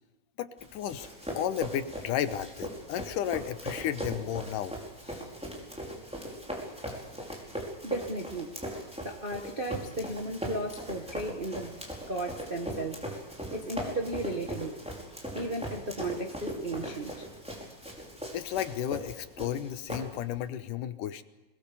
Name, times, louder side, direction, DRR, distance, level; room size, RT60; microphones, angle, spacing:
voice 1, 0.4-1.1 1.3-4.7 5.1-5.2 18.3-21.2, left 10 dB, 90° left, 11 dB, 2.6 m, -33 dB
Run, 0.6-20.4, equal, ahead, 4.8 m, -39 dB
voice 2, 7.8-8.6 9.0-11.7 12.1-13.0 13.5-14.8 15.3-17.3, right 1 dB, 70° right, 2 dB, 0.5 m, -35 dB
23.0 x 21.0 x 7.0 m, 1.1 s
omnidirectional pair, 3.6 m